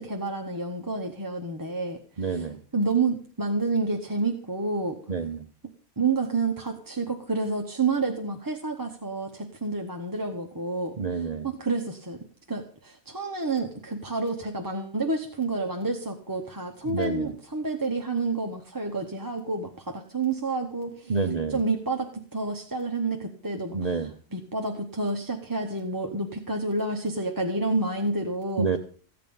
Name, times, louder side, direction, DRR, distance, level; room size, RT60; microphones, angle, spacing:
voice 1, 0.0-2.4 2.7-5.0 6.0-12.2 12.5-21.1 21.5-28.7, right 3 dB, 20° right, 2 dB, 0.9 m, -29 dB
voice 2, 2.2-2.6 5.1-5.4 11.0-11.5 16.9-17.3 21.1-21.6 23.7-24.1 28.6-28.8, right 4 dB, 40° right, 8 dB, 0.7 m, -28 dB
15.0 x 8.7 x 5.4 m, 0.43 s
omnidirectional pair, 1.3 m